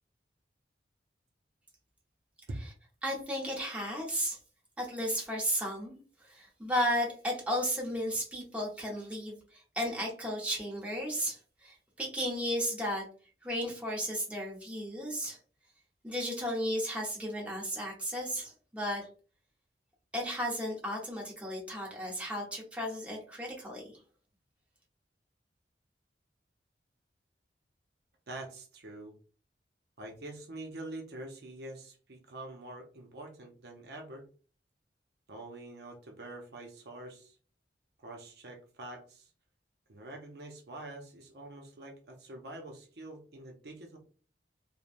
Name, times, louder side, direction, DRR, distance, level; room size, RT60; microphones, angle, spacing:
voice 1, 3.0-4.4 4.8-13.0 13.4-15.4 16.0-19.1 20.1-23.9, equal, 10° right, -3 dB, 0.8 m, -34 dB
voice 2, 28.3-29.1 30.0-34.3 35.3-37.4 38.0-39.3 39.9-44.0, right 2 dB, 65° right, 2 dB, 0.6 m, -46 dB
3.1 x 2.1 x 2.5 m, 0.39 s
head